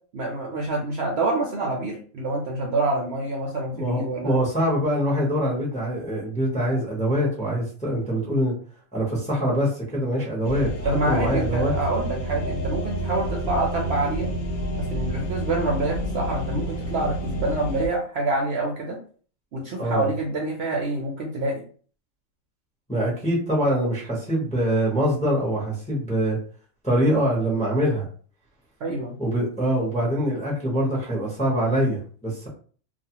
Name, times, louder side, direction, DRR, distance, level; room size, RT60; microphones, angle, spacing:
voice 1, 0.1-4.3 8.3-8.5 10.8-14.3 14.7-19.0 19.5-21.6 28.8-29.1, right 2 dB, 60° right, -1 dB, 0.7 m, -27 dB
voice 2, 3.7-8.5 8.9-11.7 19.8-20.1 22.9-26.4 26.8-28.1 29.2-32.5, equal, 5° left, -4 dB, 0.6 m, -24 dB
sound 1, 10.4-17.9, right 1 dB, 65° left, 0.9 m, -29 dB
2.4 x 2.4 x 2.8 m, 0.43 s
omnidirectional pair, 1.4 m